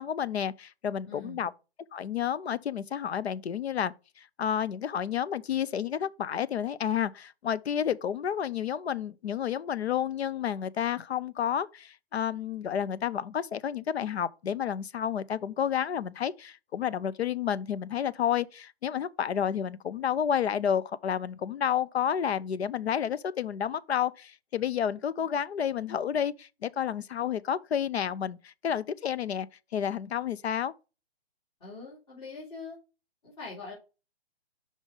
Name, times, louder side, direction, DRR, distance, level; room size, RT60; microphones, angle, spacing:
voice 1, 0.0-1.5 1.9-29.5 29.7-30.7, left 9 dB, 80° left, 0.7 m, -30 dB
voice 2, 1.0-1.5 31.6-32.8 33.2-33.7, left 3 dB, 35° left, 3.4 m, -43 dB
5.3 x 5.3 x 4.8 m
hypercardioid pair, 165°, 32 cm